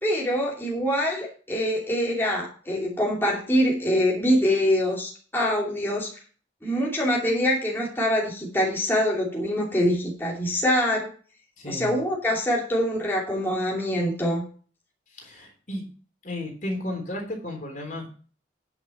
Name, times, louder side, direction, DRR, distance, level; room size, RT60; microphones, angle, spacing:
voice 1, 0.0-6.2 6.6-11.1 11.7-14.4, equal, 10° left, -4 dB, 2.7 m, -24 dB
voice 2, 11.6-11.9 15.1-15.8 16.2-18.1, left 1 dB, 45° left, 1 dB, 3.5 m, -33 dB
9.7 x 6.3 x 5.7 m, 0.39 s
head